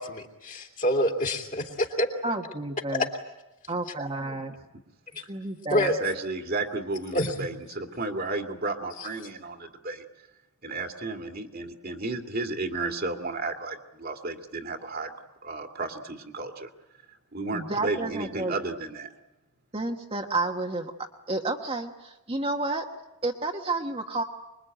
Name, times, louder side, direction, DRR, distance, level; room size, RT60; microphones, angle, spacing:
voice 1, 0.0-2.1 2.9-3.0 4.2-4.3 5.7-6.0 7.1-7.5 9.0-9.1, left 1 dB, 40° left, 3 dB, 2.9 m, -27 dB
voice 2, 2.2-3.1 3.7-4.5 5.3-5.9 17.5-18.5 19.7-20.9 21.3-22.8 23.2-24.2, right 2 dB, 25° right, 2 dB, 1.4 m, -30 dB
voice 3, 5.8-10.0 10.6-15.1 15.4-16.7 17.3-19.1, right 3 dB, 45° right, 4 dB, 2.2 m, -33 dB
25.5 x 22.0 x 9.1 m, 0.94 s
head